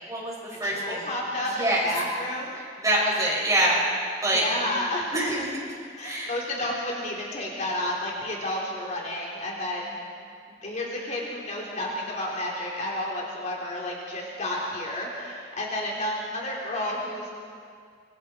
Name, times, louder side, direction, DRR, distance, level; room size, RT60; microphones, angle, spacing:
voice 1, 0.1-1.1 1.4-1.8 2.8-3.8 4.2-4.4 5.1-5.5 6.0-6.3, right 1 dB, 20° right, -4 dB, 6.4 m, -25 dB
voice 2, 0.6-2.6 4.3-5.1 6.0-10.0 10.5-17.3, left 1 dB, 45° left, -3 dB, 3.7 m, -31 dB
26.0 x 24.5 x 4.6 m, 2.1 s
head